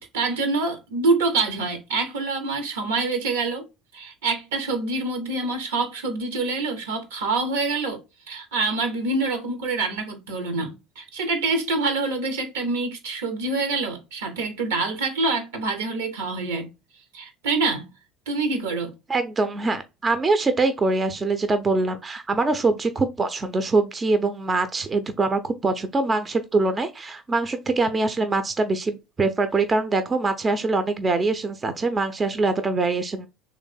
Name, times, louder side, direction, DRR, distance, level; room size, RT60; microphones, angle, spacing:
voice 1, 0.1-3.6 3.9-8.0 8.3-16.7 17.1-17.9 18.3-19.0, right 3 dB, 70° right, 1.0 m, -26 dB
voice 2, 19.1-33.3, right 3 dB, 25° right, 0.6 m, -23 dB
3.3 x 3.1 x 4.2 m
figure-of-eight pair, 65°, 0 cm